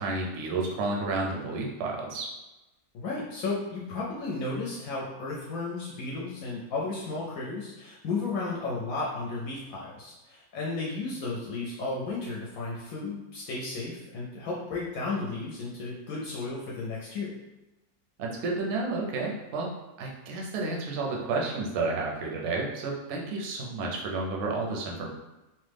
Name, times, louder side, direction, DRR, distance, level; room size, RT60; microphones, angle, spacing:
voice 1, 0.0-2.3 18.2-19.7 20.0-25.1, right 3 dB, 65° right, -1 dB, 0.8 m, -31 dB
voice 2, 2.9-17.4, left 3 dB, 70° left, -4 dB, 0.9 m, -34 dB
3.0 x 2.1 x 3.3 m, 1.0 s
omnidirectional pair, 1.6 m